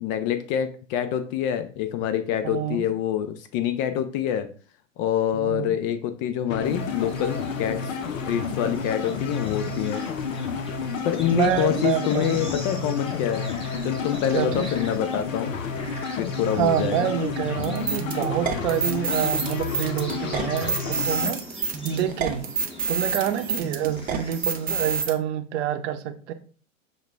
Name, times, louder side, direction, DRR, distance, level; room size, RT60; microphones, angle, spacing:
voice 1, 0.0-4.5 5.0-8.0 8.3-10.0 11.0-13.5 13.8-15.5 16.2-17.1, left 10 dB, 30° left, 9 dB, 0.4 m, -26 dB
voice 2, 2.4-2.9 5.3-5.7 11.3-12.5 14.3-14.7 16.6-22.4 22.9-26.3, right 10 dB, 60° right, 8 dB, 0.7 m, -27 dB
sound 1, 6.5-21.4, left 5 dB, 75° left, 0.6 m, -31 dB
sound 2, 6.6-24.9, left 1 dB, 15° left, 1.3 m, -42 dB
sound 3, 17.6-25.1, right 5 dB, 20° right, 0.6 m, -28 dB
6.3 x 2.2 x 3.2 m, 0.40 s
hypercardioid pair, 95°, 40 cm